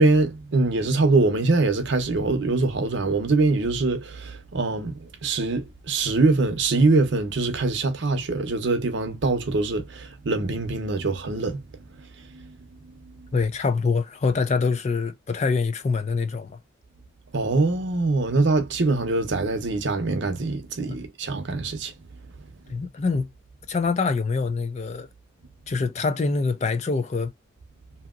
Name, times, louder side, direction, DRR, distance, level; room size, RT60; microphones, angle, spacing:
voice 1, 0.0-11.6 12.3-12.5 17.3-21.9, right 3 dB, 60° right, 0.7 m, -23 dB
voice 2, 13.3-16.6 20.9-21.0 22.7-23.3 23.7-25.1 25.7-27.3, left 4 dB, 35° left, 0.3 m, -25 dB
2.8 x 2.8 x 2.4 m
head